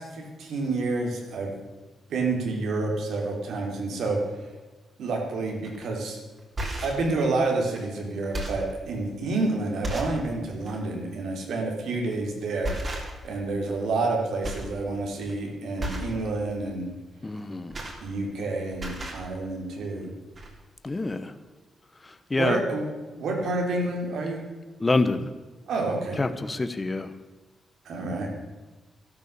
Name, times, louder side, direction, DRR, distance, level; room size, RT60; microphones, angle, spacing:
voice 1, 0.0-1.6 2.1-4.2 5.0-6.2 6.8-12.7 13.2-16.9 18.0-20.1 22.4-22.8 23.2-24.4 25.7-26.2 27.9-28.3, right 3 dB, 80° right, 1 dB, 3.5 m, -29 dB
sound 1, 5.6-5.8 6.4-7.1 7.7-7.8 8.2-8.7 9.3-9.4 9.8-10.2 10.6-10.8 12.0-12.2 12.6-13.4 13.7-14.1 14.4-14.8 15.1-15.3 15.8-16.2 17.3-18.5 18.7-19.3 20.0-20.1 20.3-20.5, right 1 dB, 35° right, 3.2 m, -34 dB
voice 2, 17.2-17.8 20.8-21.3 22.0-22.6 24.8-25.3 26.2-27.1, left 3 dB, 20° left, 11 dB, 1.1 m, -26 dB
12.5 x 12.5 x 6.9 m, 1.2 s
cardioid pair, 115°, 0 cm